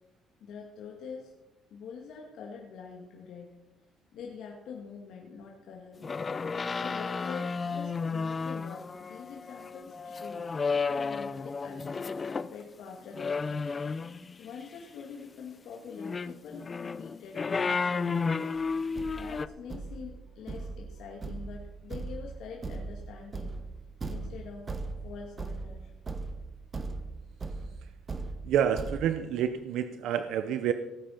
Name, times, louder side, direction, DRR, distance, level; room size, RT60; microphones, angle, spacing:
voice 1, 0.4-1.3 1.7-3.5 4.1-6.1 6.8-12.2 12.5-13.7 14.4-18.5 18.8-23.6 24.0-24.7 25.0-25.9, left 6 dB, 70° left, -1 dB, 2.1 m, -45 dB
sound 1, 6.0-12.5 13.1-14.4 15.9-19.5, left 4 dB, 25° left, 0.4 m, -32 dB
Thump thud, 18.6-18.7 19.0-29.0, right 3 dB, 25° right, 1.3 m, -39 dB
voice 2, 28.4-30.7, right 9 dB, 75° right, 10 dB, 0.7 m, -28 dB
17.5 x 9.0 x 5.8 m, 1.0 s
cardioid pair, 135°, 0 cm